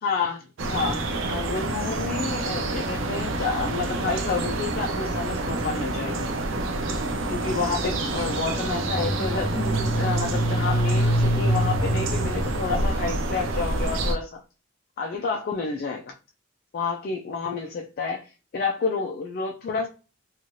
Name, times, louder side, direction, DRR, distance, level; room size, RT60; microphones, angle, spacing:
voice 1, 0.0-6.2 7.3-14.4 15.0-16.1 16.7-19.9, left 4 dB, 50° left, 0.3 m, -30 dB
sound 1, 0.6-14.2, right 2 dB, 75° right, 0.5 m, -28 dB
sound 2, 8.6-13.5, right 1 dB, 35° left, 1.0 m, -26 dB
3.0 x 2.4 x 2.6 m
head